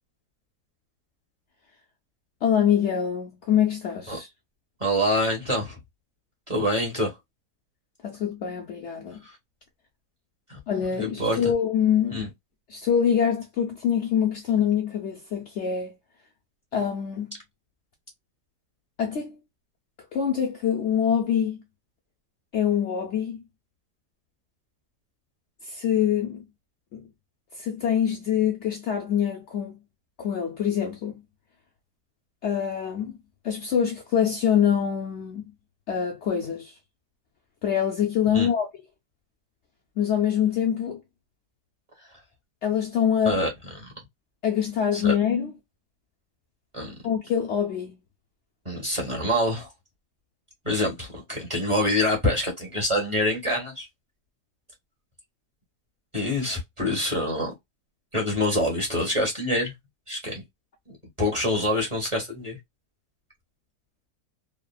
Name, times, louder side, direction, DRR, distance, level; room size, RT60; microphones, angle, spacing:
voice 1, 2.4-4.3 8.0-9.2 10.7-12.3 12.7-15.9 16.7-17.3 19.0-19.4 20.1-21.6 22.5-23.4 25.6-26.4 26.9-27.0 27.6-29.8 30.2-31.2 32.4-33.2 33.4-35.4 35.9-36.8 37.6-38.7 40.0-41.0 42.6-43.4 44.4-45.5 47.0-47.9 56.8-56.9, left 8 dB, 85° left, 0.6 m, -25 dB
voice 2, 4.8-5.7 6.5-7.1 9.2-9.3 10.5-10.6 11.0-11.5 12.1-12.3 38.3-38.5 43.2-43.5 43.8-43.9 44.9-45.1 46.7-46.9 48.6-49.7 50.6-53.9 56.1-57.5 58.1-59.7 60.1-60.4 61.2-62.6, left 1 dB, 20° right, 1.0 m, -26 dB
3.2 x 2.1 x 2.2 m
omnidirectional pair, 1.8 m